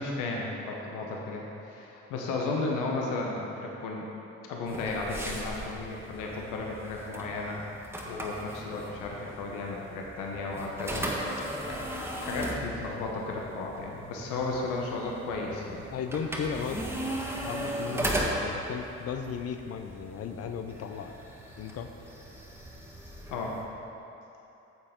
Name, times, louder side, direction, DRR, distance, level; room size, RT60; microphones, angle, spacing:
voice 1, 0.0-4.1 4.5-7.6 8.0-15.9 23.3-23.6, left 3 dB, 90° left, -1 dB, 1.1 m, -34 dB
sound 1, 4.7-23.6, right 1 dB, 10° right, 1.5 m, -37 dB
voice 2, 15.9-16.8 17.4-21.2 21.6-21.9, left 7 dB, 55° left, 6 dB, 0.7 m, -35 dB
10.0 x 6.9 x 3.7 m, 3.0 s
supercardioid pair, 80°, 30 cm